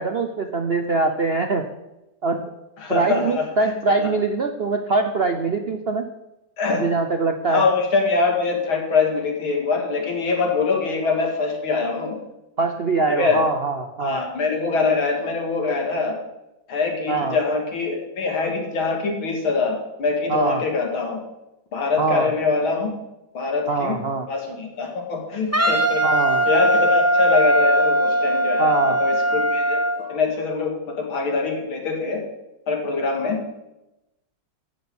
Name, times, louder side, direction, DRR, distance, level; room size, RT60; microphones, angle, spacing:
voice 1, 0.0-1.6 2.2-2.4 2.9-6.1 6.7-7.6 12.6-14.2 17.1-17.4 20.3-20.6 22.0-22.3 23.7-24.3 26.0-26.4 28.6-29.0, right 3 dB, 60° right, 6 dB, 0.6 m, -23 dB
voice 2, 2.8-4.1 6.6-6.9 7.5-12.2 13.1-13.4 14.0-16.1 16.7-21.2 21.7-22.9 23.3-24.0 24.3-26.0 26.5-32.2 32.7-33.4, left 4 dB, 85° left, 1 dB, 3.2 m, -24 dB
Wind instrument woodwind instrument, 25.5-30.0, right 1 dB, 10° right, 0.8 m, -19 dB
13.0 x 6.3 x 8.6 m, 0.95 s
omnidirectional pair, 2.2 m